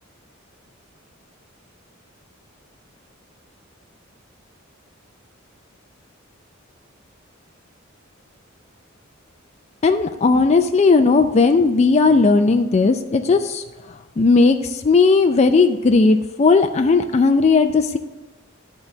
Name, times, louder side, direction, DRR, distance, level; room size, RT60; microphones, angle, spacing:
voice 1, 9.8-13.6 14.2-14.6 14.8-18.0, left 4 dB, 30° left, 6 dB, 0.4 m, -16 dB
11.0 x 3.9 x 6.9 m, 1.2 s
head